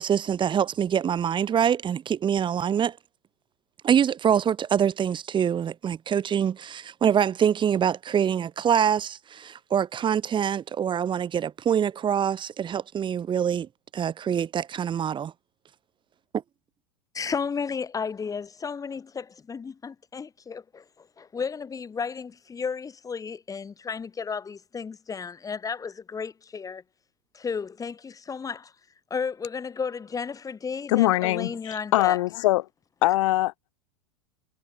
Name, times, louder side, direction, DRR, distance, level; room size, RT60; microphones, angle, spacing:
voice 1, 0.0-3.0 3.8-13.7 13.9-15.3, right 8 dB, 30° right, 2.8 m, -25 dB
voice 2, 17.1-26.8 27.3-28.7 29.1-32.2, left 5 dB, 20° left, 5.8 m, -33 dB
voice 3, 30.9-32.7 33.0-33.7, left 17 dB, 70° left, 2.1 m, -23 dB
hypercardioid pair, 105°, 17 cm